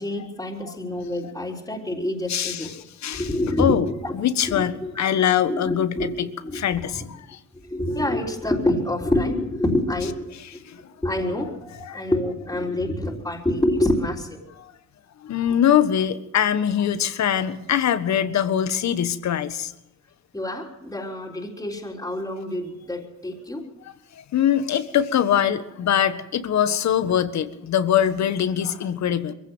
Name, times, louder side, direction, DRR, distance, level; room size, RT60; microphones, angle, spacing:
voice 1, 0.0-2.7 3.1-4.1 4.5-5.1 5.5-6.2 6.4-7.0 7.6-10.3 10.5-10.7 11.0-14.4 20.3-23.7, left 1 dB, 10° left, -2 dB, 3.7 m, -27 dB
voice 2, 2.3-2.7 3.0-3.3 3.6-3.8 4.2-6.3 6.5-7.4 10.7-10.8 11.4-11.5 11.8-12.0 15.2-19.7 24.3-29.3, left 9 dB, 65° left, 12 dB, 1.5 m, -22 dB
22.5 x 16.0 x 7.9 m, 0.89 s
cardioid pair, 90°, 30 cm